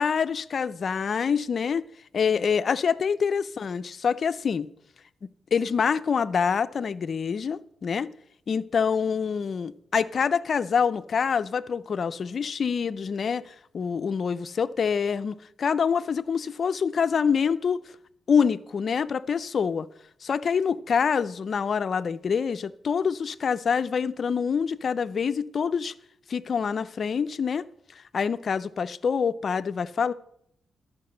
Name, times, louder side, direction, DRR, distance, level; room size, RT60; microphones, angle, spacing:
voice 1, 0.0-1.8 2.1-4.7 5.5-8.1 8.5-17.8 18.3-19.9 20.2-25.9 26.3-27.6 28.1-30.1, left 6 dB, 50° left, 0.5 m, -26 dB
11.5 x 5.8 x 7.8 m
cardioid pair, 115°, 0 cm